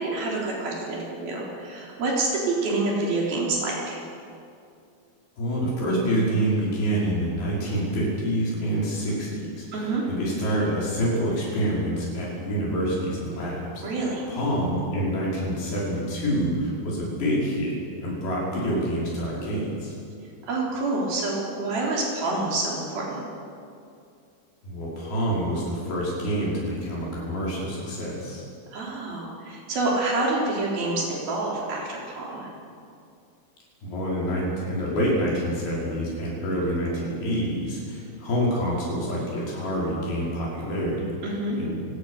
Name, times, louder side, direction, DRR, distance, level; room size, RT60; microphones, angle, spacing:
voice 1, 0.0-4.0 9.7-10.0 13.8-14.3 20.4-23.2 28.7-32.5 41.2-41.6, right 2 dB, 75° right, -3 dB, 5.6 m, -27 dB
voice 2, 5.4-9.7 10.1-13.8 14.3-17.7 18.0-19.9 24.6-28.4 33.8-41.1 41.5-41.8, equal, 90° left, -5 dB, 7.3 m, -27 dB
29.0 x 18.5 x 6.5 m, 2.4 s
omnidirectional pair, 4.3 m